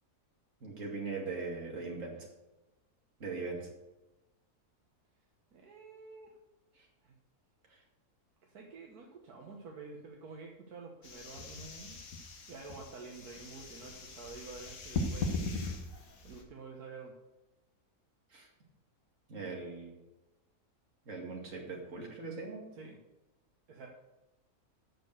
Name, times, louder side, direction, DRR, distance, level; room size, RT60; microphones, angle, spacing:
voice 1, 0.6-2.2 3.2-3.6 7.7-7.8 18.3-18.5 19.3-19.9 21.1-22.6, right 4 dB, 55° right, -1 dB, 2.6 m, -40 dB
voice 2, 5.5-6.4 7.0-7.1 8.4-12.0 12.5-15.6 16.2-17.1 22.7-23.0 23.7-23.9, right 4 dB, 80° right, 0 dB, 1.7 m, -49 dB
sound 1, 11.0-16.4, left 2 dB, 65° left, 1.8 m, -39 dB
8.9 x 6.7 x 6.6 m, 1.0 s
omnidirectional pair, 1.6 m